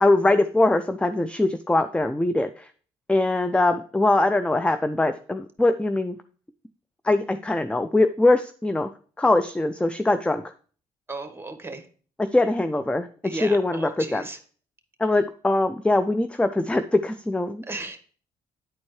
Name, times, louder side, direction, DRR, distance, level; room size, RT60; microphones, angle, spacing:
voice 1, 0.0-2.7 3.1-6.2 7.0-8.9 9.2-10.5 12.3-14.2 15.0-17.6, left 2 dB, 5° left, 11 dB, 0.4 m, -22 dB
voice 2, 11.1-11.9 13.2-14.4 17.6-18.0, right 2 dB, 15° right, 7 dB, 1.4 m, -35 dB
9.6 x 4.3 x 3.1 m, 0.43 s
supercardioid pair, 55°, 18 cm